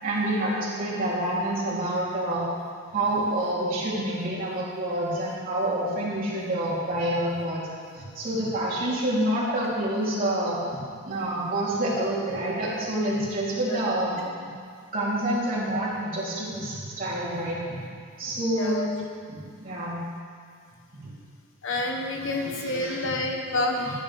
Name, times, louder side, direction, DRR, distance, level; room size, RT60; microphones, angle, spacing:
voice 1, 0.0-2.5 2.9-7.6 7.9-10.6 11.0-14.5 14.9-17.8 18.2-18.8 19.3-20.0 20.9-21.1 22.2-23.1 23.8-23.9, right 1 dB, 40° right, -8 dB, 3.5 m, -28 dB
voice 2, 18.6-18.9 21.6-23.9, left 2 dB, 60° left, 2 dB, 1.2 m, -28 dB
16.0 x 10.5 x 3.6 m, 2.1 s
head